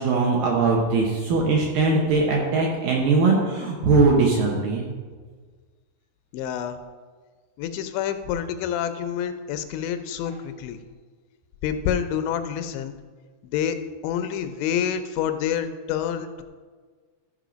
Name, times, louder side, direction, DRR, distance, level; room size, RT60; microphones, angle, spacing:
voice 1, 0.0-4.8, right 3 dB, 75° right, -1 dB, 2.2 m, -20 dB
voice 2, 6.3-6.8 7.6-10.8 11.6-12.9 13.5-13.8 14.0-16.4, left 9 dB, 85° left, 9 dB, 2.8 m, -27 dB
14.5 x 5.4 x 5.0 m, 1.5 s
omnidirectional pair, 5.2 m